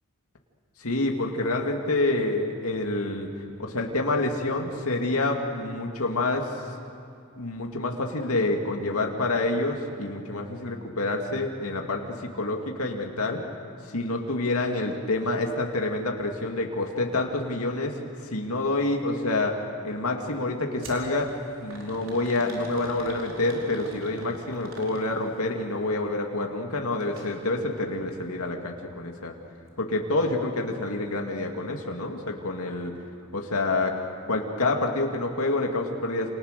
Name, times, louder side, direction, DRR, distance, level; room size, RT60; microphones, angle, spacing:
voice 1, 0.8-3.3 3.6-6.5 7.4-13.4 13.9-17.9 18.2-19.5 19.8-21.3 21.6-29.3 29.8-32.9 33.3-34.0 34.3-36.3, left 2 dB, 85° left, 2 dB, 2.5 m, -27 dB
sound 1, 20.8-21.0 21.7-25.4 27.0-27.3 27.7-27.8 28.6-28.7, right 1 dB, 60° right, 4.9 m, -42 dB
28.5 x 27.5 x 6.8 m, 2.6 s
head